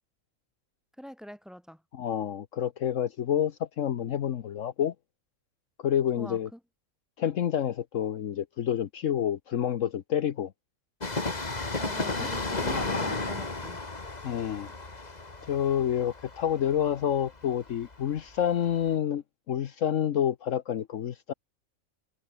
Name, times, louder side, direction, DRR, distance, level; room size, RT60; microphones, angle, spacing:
voice 1, 1.0-1.8 6.2-6.6 11.8-13.8, equal, ahead, 6.2 m, -43 dB
voice 2, 1.9-4.9 5.8-6.5 7.2-10.5 12.2-12.3 14.2-14.7 15.5-21.3, left 9 dB, 70° left, 1.2 m, -28 dB
Train, 11.0-18.4 18.7-18.8, left 3 dB, 30° left, 2.1 m, -33 dB
omnidirectional pair, 1.4 m